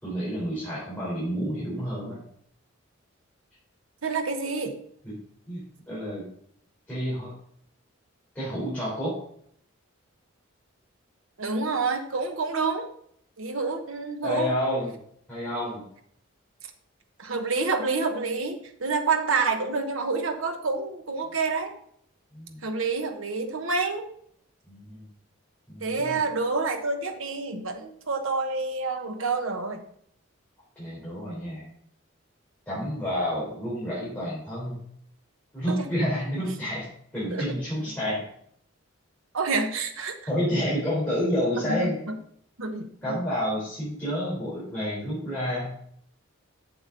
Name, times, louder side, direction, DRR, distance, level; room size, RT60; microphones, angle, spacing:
voice 1, 0.0-2.2 5.0-5.1 5.5-6.2 6.9-7.3 8.3-9.2 14.2-15.0 15.3-15.8 22.3-22.6 24.7-25.1 25.7-26.2 30.8-31.7 32.7-34.8 35.5-36.9 37.1-38.2 40.3-42.0 43.0-45.7, equal, 10° left, -9 dB, 3.8 m, -29 dB
voice 2, 4.0-4.7 11.4-12.9 13.4-14.5 17.2-21.7 22.6-24.1 25.8-29.8 37.3-37.5 39.3-40.1 41.6-41.9 42.6-43.2, right 4 dB, 75° right, 5 dB, 1.1 m, -28 dB
7.9 x 7.1 x 3.9 m, 0.65 s
head